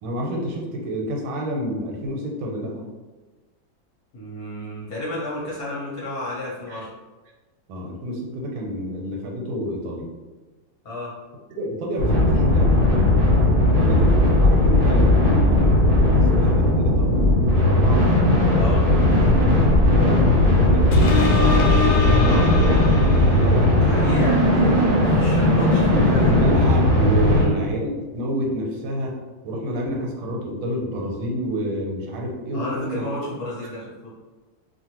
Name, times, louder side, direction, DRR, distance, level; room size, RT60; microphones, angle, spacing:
voice 1, 0.0-2.8 6.7-6.8 7.7-10.1 11.5-12.7 13.7-18.1 19.4-25.1 25.5-29.2 29.4-33.1, equal, 85° right, 0 dB, 1.4 m, -29 dB
voice 2, 4.1-6.9 10.8-11.1 18.5-18.9 23.7-26.3 27.3-27.7 32.5-34.1, left 1 dB, 55° left, -8 dB, 1.2 m, -32 dB
sound 1, 12.0-27.4, left 1 dB, 70° right, 0.5 m, -17 dB
sound 2, 20.9-23.8 24.4-24.5, left 3 dB, 80° left, 1.3 m, -23 dB
3.0 x 2.4 x 2.9 m, 1.2 s
omnidirectional pair, 2.2 m